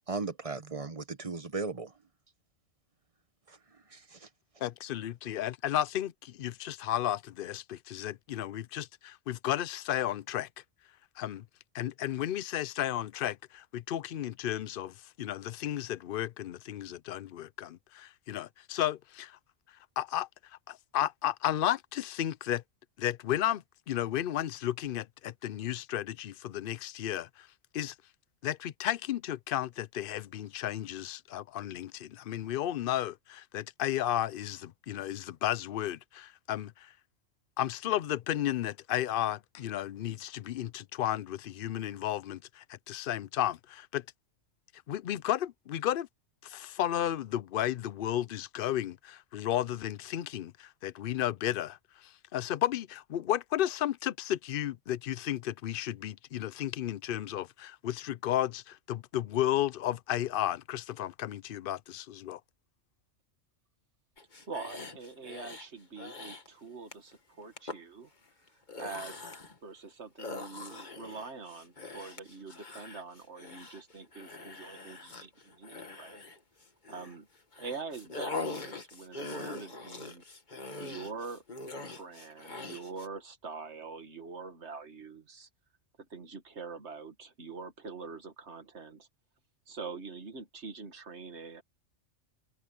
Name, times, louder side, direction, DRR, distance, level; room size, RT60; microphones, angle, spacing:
voice 1, 0.1-1.9 3.9-4.3, right 3 dB, 30° right, 1.0 m, -36 dB
voice 2, 4.6-10.5 11.2-11.4 11.7-19.4 20.0-20.3 20.7-22.6 23.0-27.5 27.7-27.9 28.4-36.9 37.6-44.0 44.9-46.1 46.4-62.4, left 12 dB, 60° left, 0.6 m, -33 dB
sound 1, 64.2-65.7 66.0-66.5 66.9-67.1 67.6-67.8 68.5-69.6 70.2-77.2 77.5-83.1, left 3 dB, 35° left, 1.8 m, -43 dB
voice 3, 64.5-68.1 68.8-69.2 69.6-76.2 76.9-77.3 77.6-80.2 80.8-81.4 81.8-85.5 86.1-89.1 89.7-91.6, right 4 dB, 60° right, 2.2 m, -44 dB
omnidirectional pair, 1.3 m